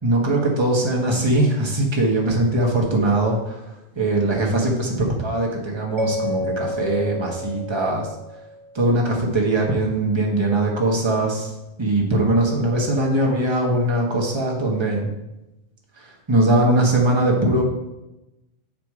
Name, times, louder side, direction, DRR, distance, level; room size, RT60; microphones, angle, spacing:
voice 1, 0.0-8.1 8.7-11.5 11.8-15.1 16.0-17.6, right 1 dB, 25° right, -1 dB, 1.3 m, -21 dB
Mallet percussion, 6.0-9.0, left 2 dB, 80° right, 1.3 m, -30 dB
7.5 x 4.7 x 4.8 m, 0.95 s
omnidirectional pair, 1.1 m